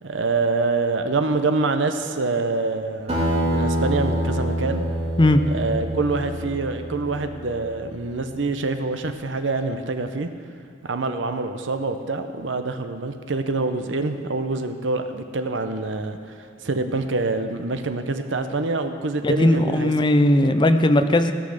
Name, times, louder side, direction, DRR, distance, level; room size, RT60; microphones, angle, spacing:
voice 1, 0.0-4.8 5.5-10.3 10.8-19.9, right 3 dB, 85° right, 8 dB, 0.8 m, -26 dB
Acoustic guitar, 3.1-7.9, equal, 35° right, 2.7 m, -26 dB
voice 2, 19.2-21.3, left 1 dB, 25° left, 9 dB, 0.6 m, -18 dB
16.5 x 6.3 x 6.4 m, 2.3 s
head